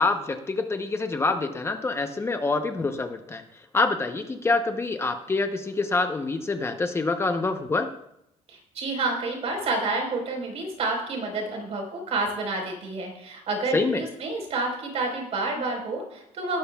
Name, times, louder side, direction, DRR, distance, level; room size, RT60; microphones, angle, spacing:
voice 1, 0.0-3.4 3.7-7.9 13.7-14.0, left 3 dB, 20° left, 6 dB, 0.7 m, -26 dB
voice 2, 8.5-16.6, right 3 dB, 55° right, 2 dB, 4.2 m, -29 dB
18.0 x 13.0 x 2.3 m, 0.80 s
cardioid pair, 145°, 13 cm